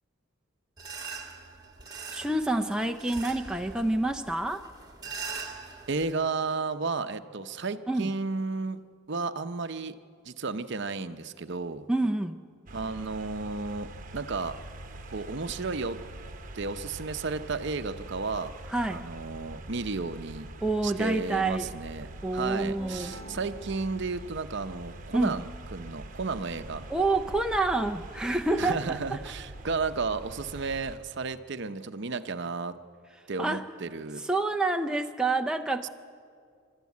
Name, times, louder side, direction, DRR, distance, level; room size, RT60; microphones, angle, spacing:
sound 1, 0.8-6.1, right 5 dB, 20° right, 1.8 m, -42 dB
voice 1, 2.1-4.6 7.9-8.1 11.9-12.4 18.7-19.0 20.6-21.7 22.2-23.1 25.1-25.4 26.9-29.2 33.4-33.6 34.2-35.9, right 2 dB, 5° right, 5 dB, 0.5 m, -28 dB
voice 2, 5.9-8.8 9.1-9.9 10.3-11.9 12.7-14.6 15.1-16.0 16.5-18.5 18.9-20.5 20.8-26.9 28.6-32.7 33.3-34.2, right 4 dB, 55° right, 10 dB, 0.7 m, -33 dB
sound 2, 12.7-31.0, right 1 dB, 40° right, 1.1 m, -44 dB
sound 3, 22.8-24.6, equal, 30° left, 1.8 m, -47 dB
24.5 x 13.0 x 9.5 m, 2.3 s
head